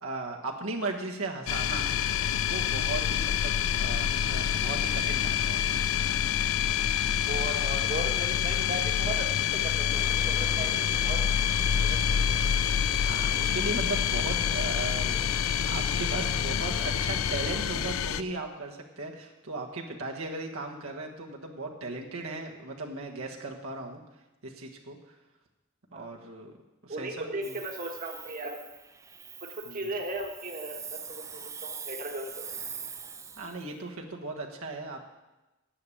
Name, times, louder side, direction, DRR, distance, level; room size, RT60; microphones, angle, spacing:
voice 1, 0.0-1.9 2.5-5.8 6.9-7.1 13.0-24.0 24.4-25.1 25.9-26.5 26.8-27.5 29.7-29.8 33.4-35.0, right 3 dB, 75° right, 0 dB, 1.4 m, -37 dB
sound 1, 1.5-18.2, left 9 dB, 70° left, 0.4 m, -27 dB
voice 2, 7.3-9.3 9.5-11.2 11.8-12.3 25.9-26.1 26.9-28.6 29.4-32.5, right 1 dB, 40° right, 2 dB, 1.4 m, -37 dB
sound 2, 9.9-17.9, equal, 10° left, 1.4 m, -43 dB
Hiss, 27.4-33.7, right 6 dB, 15° right, 0.4 m, -43 dB
10.5 x 6.9 x 8.6 m, 1.0 s
head